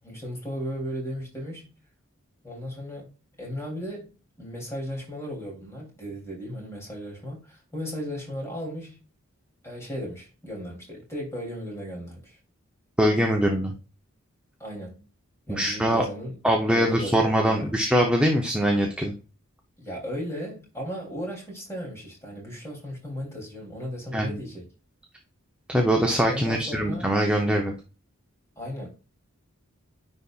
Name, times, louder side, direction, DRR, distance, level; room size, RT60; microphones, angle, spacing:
voice 1, 0.0-1.7 2.4-3.1 3.4-9.0 9.6-12.4 14.6-15.1 15.5-16.4 16.7-17.7 19.8-24.6 26.3-27.1 28.6-28.9, equal, 15° left, 3.0 m, -36 dB
voice 2, 13.0-13.7 15.5-16.0 16.4-19.1 24.1-24.3 25.7-27.7, equal, 5° right, 0.7 m, -22 dB
9.9 x 4.1 x 2.4 m
head